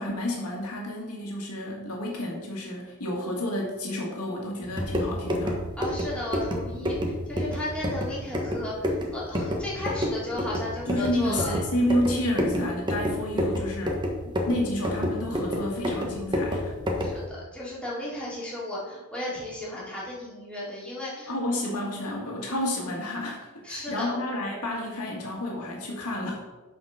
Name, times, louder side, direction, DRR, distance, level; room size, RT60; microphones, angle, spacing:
voice 1, 0.0-5.6 10.9-16.7 21.3-26.4, left 1 dB, 85° left, -1 dB, 2.1 m, -30 dB
sound 1, 4.6-17.2, left 1 dB, 20° right, 1.3 m, -29 dB
voice 2, 5.8-11.6 17.0-21.3 23.6-24.2, left 1 dB, 5° left, -8 dB, 3.1 m, -34 dB
8.7 x 5.1 x 5.8 m, 1.2 s
head